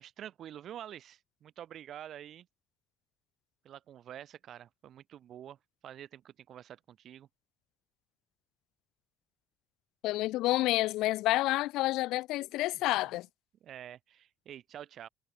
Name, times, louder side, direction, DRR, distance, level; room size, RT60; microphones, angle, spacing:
voice 1, 0.0-2.5 3.6-5.6 5.8-7.3 13.6-15.1, right 10 dB, 60° right, 3.1 m, -47 dB
voice 2, 10.0-13.3, left 17 dB, 85° left, 0.4 m, -29 dB
cardioid pair, 105°, 0 cm